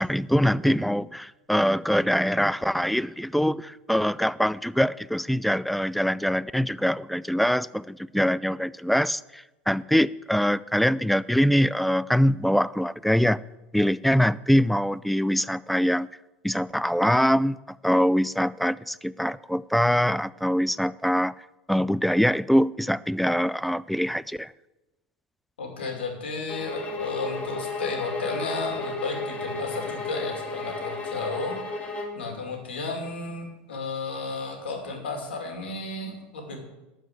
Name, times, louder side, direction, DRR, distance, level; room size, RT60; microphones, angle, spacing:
voice 1, 0.0-13.4 13.7-16.1 16.4-21.3 21.7-24.5, equal, ahead, 20 dB, 0.3 m, -23 dB
voice 2, 25.6-31.6 32.1-36.6, left 3 dB, 85° left, 2 dB, 2.6 m, -33 dB
sound 1, 26.5-32.2, left 2 dB, 25° left, 2.2 m, -33 dB
12.0 x 5.2 x 7.8 m, 1.0 s
hypercardioid pair, 90°, 6 cm